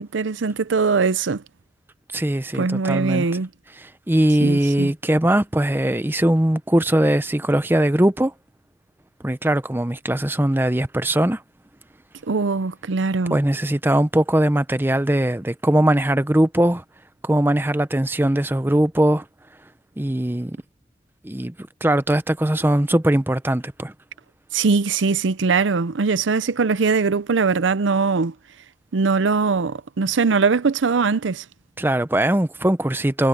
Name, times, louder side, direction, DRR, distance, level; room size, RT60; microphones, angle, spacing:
voice 1, 0.0-1.4 2.5-3.5 4.4-4.9 12.3-13.4 24.5-28.3 28.9-31.4, right 4 dB, 80° right, 0.6 m, -21 dB
voice 2, 2.1-3.2 3.8-8.3 9.2-11.4 13.3-16.8 17.2-19.2 20.0-20.6 21.2-21.5 21.8-23.9 31.8-33.3, right 1 dB, 10° right, 0.6 m, -20 dB
head